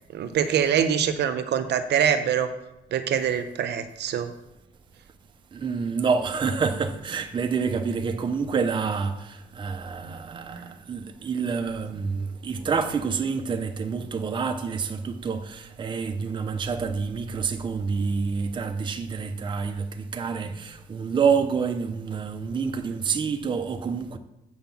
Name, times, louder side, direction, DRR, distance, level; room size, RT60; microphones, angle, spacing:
voice 1, 0.1-2.5 2.9-4.3 10.0-10.7, right 8 dB, 60° right, 0.8 m, -25 dB
voice 2, 5.5-24.2, right 5 dB, 25° right, 0.6 m, -28 dB
7.8 x 5.9 x 7.2 m
cardioid pair, 160°, 20 cm